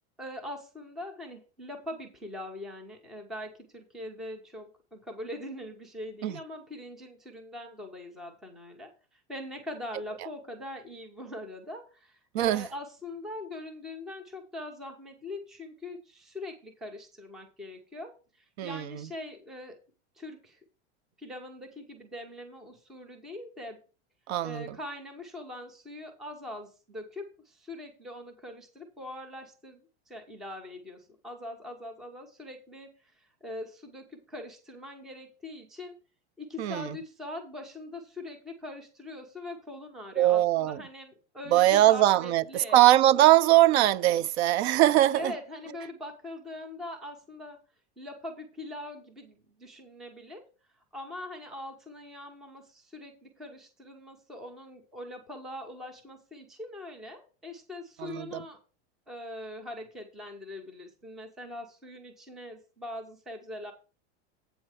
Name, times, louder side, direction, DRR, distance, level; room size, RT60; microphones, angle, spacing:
voice 1, 0.2-19.8 20.2-20.6 21.2-23.8 24.4-35.9 36.4-42.8 45.1-47.6 48.0-50.5 50.9-58.6 59.1-63.7, left 1 dB, ahead, 0.3 m, -42 dB
voice 2, 12.3-12.7 18.6-18.8 24.3-24.7 36.6-37.0 40.2-40.8 41.5-45.3 58.0-58.4, right 14 dB, 70° right, 0.6 m, -21 dB
8.0 x 4.3 x 6.3 m
supercardioid pair, 175°, 34 cm